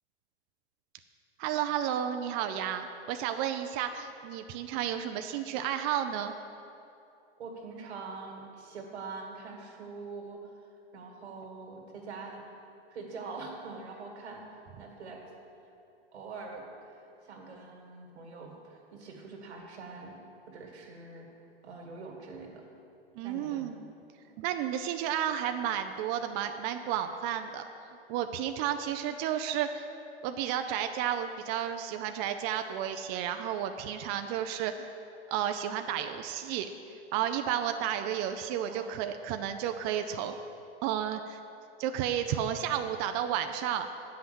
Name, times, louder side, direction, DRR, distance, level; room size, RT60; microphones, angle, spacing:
voice 1, 1.4-6.3 23.2-23.9 24.4-27.6 28.1-29.8 30.2-34.9 35.3-40.3 40.8-41.4 41.8-43.9, right 10 dB, 30° right, 7 dB, 0.4 m, -32 dB
voice 2, 7.4-10.4 10.9-12.6 12.9-15.2 16.1-20.2 20.5-21.3 21.6-22.6 23.2-23.7 38.7-38.9, right 4 dB, 90° right, 1 dB, 2.1 m, -44 dB
8.5 x 5.7 x 7.8 m, 2.7 s
hypercardioid pair, 130°, 32 cm